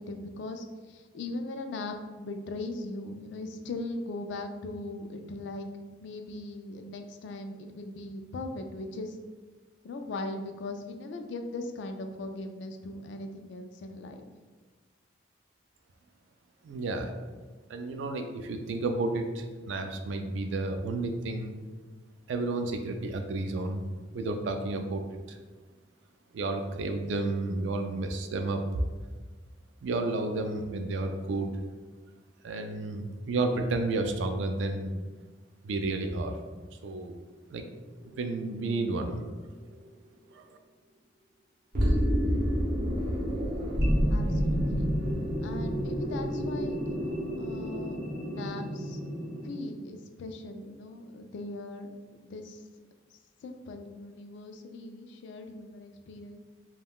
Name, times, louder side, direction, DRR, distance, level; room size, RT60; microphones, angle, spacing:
voice 1, 0.0-9.2 9.8-14.3 44.1-44.9 45.4-48.0 48.2-49.0 49.4-52.6 53.4-56.4, left 2 dB, 70° left, 6 dB, 0.3 m, -39 dB
voice 2, 16.6-17.1 17.7-21.6 22.3-25.4 26.3-28.6 29.8-31.5 32.4-34.9 35.6-36.4 36.8-37.2 37.5-37.6 38.0-39.2 40.3-40.6, right 2 dB, 80° right, 5 dB, 0.3 m, -31 dB
sound 1, 38.0-38.6 39.2-39.3 41.7-49.6, equal, 50° right, 0.7 m, -29 dB
3.5 x 2.2 x 2.3 m, 1.4 s
head